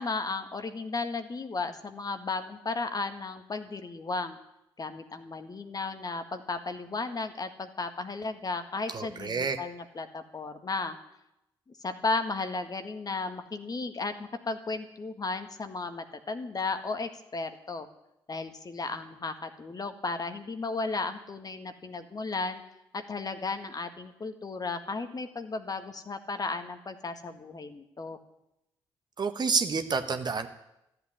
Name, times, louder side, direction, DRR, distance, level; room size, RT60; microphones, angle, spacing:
voice 1, 0.0-4.4 4.8-11.0 11.8-17.9 18.3-22.6 22.9-28.2, left 3 dB, 35° left, 8 dB, 1.7 m, -34 dB
voice 2, 8.9-9.6 29.2-30.5, right 5 dB, 40° right, 7 dB, 1.4 m, -29 dB
14.0 x 8.1 x 10.0 m, 0.87 s
figure-of-eight pair, 45°, 12 cm